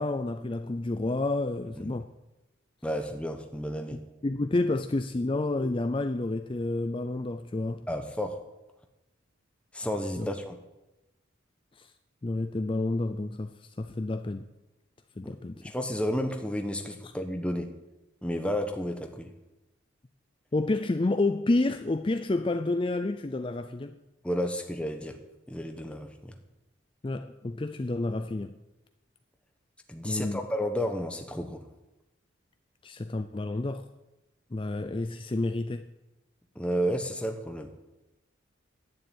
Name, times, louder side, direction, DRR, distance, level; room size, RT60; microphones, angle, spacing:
voice 1, 0.0-2.1 4.2-7.9 10.2-10.3 11.8-11.9 12.2-14.5 15.2-15.6 17.0-17.1 20.5-24.0 27.0-28.6 30.0-30.4 32.8-33.9 34.5-35.9, left 2 dB, 25° left, 0.4 m, -29 dB
voice 2, 2.8-4.0 7.9-8.4 9.7-10.6 15.2-17.7 18.2-19.3 24.2-25.1 25.5-26.3 29.9-31.6 36.6-37.7, equal, 5° left, 1.0 m, -32 dB
11.0 x 9.7 x 9.1 m
head